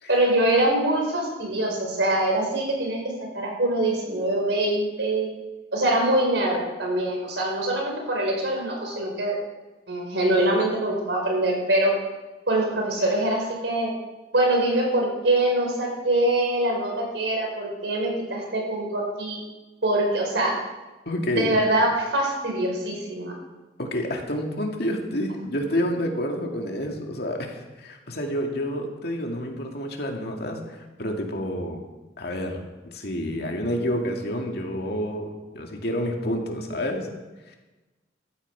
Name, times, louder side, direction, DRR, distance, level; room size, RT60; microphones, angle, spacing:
voice 1, 0.1-3.0 3.3-5.3 5.7-9.4 9.9-11.9 12.5-13.9 14.3-19.4 19.8-20.6 21.3-23.4, right 1 dB, 80° right, 0 dB, 4.8 m, -24 dB
voice 2, 21.1-21.6 23.8-31.8 32.2-32.6 32.9-35.3 35.5-37.1 37.5-37.6, equal, 65° left, 2 dB, 2.3 m, -29 dB
15.0 x 13.5 x 4.8 m, 1.1 s
head